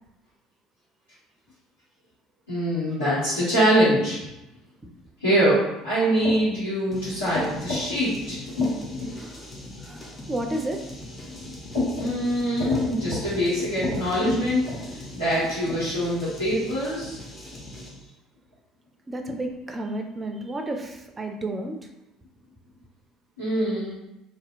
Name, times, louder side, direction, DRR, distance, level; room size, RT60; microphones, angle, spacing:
voice 1, 2.5-4.2 5.2-8.7 11.2-17.2 23.4-24.0, equal, 90° left, -15 dB, 1.0 m, -24 dB
sound 1, 6.9-18.1, left 1 dB, 20° left, 0.6 m, -41 dB
voice 2, 9.1-9.4 9.8-10.8 19.1-21.8, right 1 dB, 25° right, 4 dB, 0.4 m, -32 dB
2.7 x 2.0 x 2.4 m, 0.93 s
hypercardioid pair, 60°, 0 cm